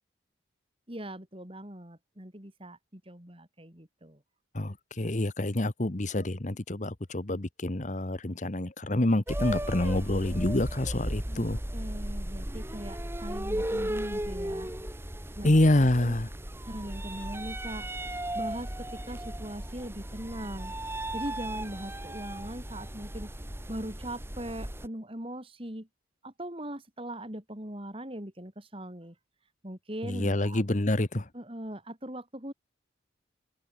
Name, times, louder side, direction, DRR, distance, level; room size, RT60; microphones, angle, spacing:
voice 1, 0.9-4.2 11.3-11.5 11.7-14.7 15.4-15.6 16.0-16.2 16.7-17.9 18.3-20.7 21.1-23.3 23.7-25.9 26.2-29.2 29.6-30.6 31.3-32.5, right 1 dB, 30° right, 3.8 m, -40 dB
voice 2, 4.5-11.6 15.4-16.3 30.0-31.3, left 1 dB, 40° left, 1.2 m, -27 dB
sound 1, 9.3-24.9, right 1 dB, 10° right, 1.5 m, -36 dB
open air
head